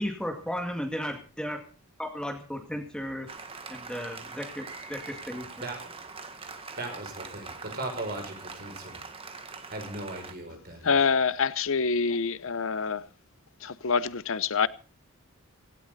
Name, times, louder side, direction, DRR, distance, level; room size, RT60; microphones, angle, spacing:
voice 1, 0.0-1.6 2.0-3.3 3.7-5.5, equal, 5° left, 2.1 m, -34 dB
Applause, 3.3-10.3, right 4 dB, 25° right, 1.6 m, -43 dB
voice 2, 6.8-9.0 9.7-11.1, right 2 dB, 45° right, 6.2 m, -38 dB
voice 3, 10.8-13.1 13.6-14.7, left 5 dB, 65° left, 0.7 m, -26 dB
17.0 x 16.5 x 4.1 m
head